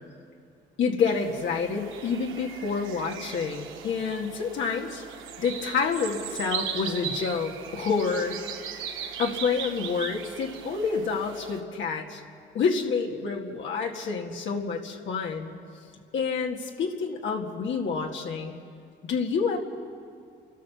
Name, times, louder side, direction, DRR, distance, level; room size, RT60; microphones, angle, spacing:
voice 1, 0.8-5.0 5.4-8.4 9.2-12.2 12.5-15.6 16.1-18.5 19.1-19.6, left 5 dB, 75° left, 1 dB, 2.1 m, -28 dB
sound 1, 1.0-11.6, right 8 dB, 90° right, 1.4 m, -38 dB
30.0 x 12.5 x 7.1 m, 2.4 s
cardioid pair, 90°, 20 cm